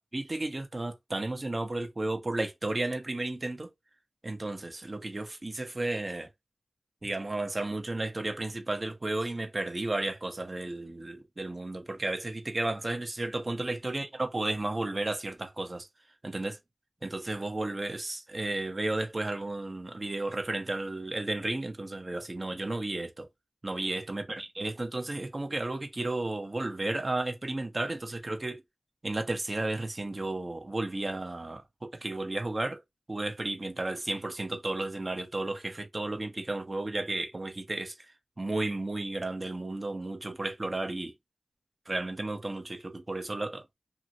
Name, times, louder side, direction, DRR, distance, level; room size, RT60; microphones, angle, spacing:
voice 1, 0.0-3.7 4.2-6.3 7.0-15.9 16.2-16.6 17.0-23.3 23.6-28.6 29.0-32.8 33.1-38.1 38.4-41.1 41.9-43.6, right 2 dB, 40° right, 0.8 m, -33 dB
2.7 x 2.6 x 2.8 m
cardioid pair, 45°, 0 cm